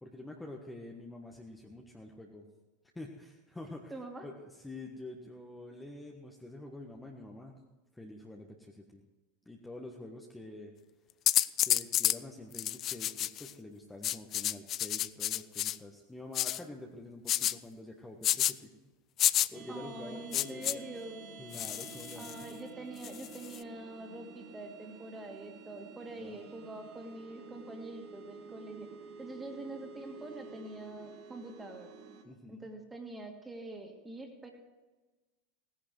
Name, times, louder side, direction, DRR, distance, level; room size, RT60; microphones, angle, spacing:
voice 1, 0.0-2.5 2.9-3.9 4.2-7.6 7.9-9.0 9.4-10.7 11.6-18.9 19.5-20.8 21.4-22.4 26.2-26.4 32.2-32.7, left 2 dB, 10° left, 0 dB, 1.4 m, -47 dB
voice 2, 3.9-4.3 19.7-21.2 22.1-28.9 29.2-31.9 32.5-34.5, right 2 dB, 10° right, 3 dB, 2.4 m, -45 dB
sound 1, 11.3-12.2 12.5-13.5 14.0-15.8 16.3-16.6 17.3-17.5 18.2-18.5 19.2-19.5 20.3-20.7 21.5-22.4 23.0-23.6, left 12 dB, 35° left, 0.4 m, -30 dB
sound 2, 19.5-32.2, right 4 dB, 45° right, 2.0 m, -50 dB
17.5 x 10.5 x 4.6 m, 1.2 s
figure-of-eight pair, 85°, 0 cm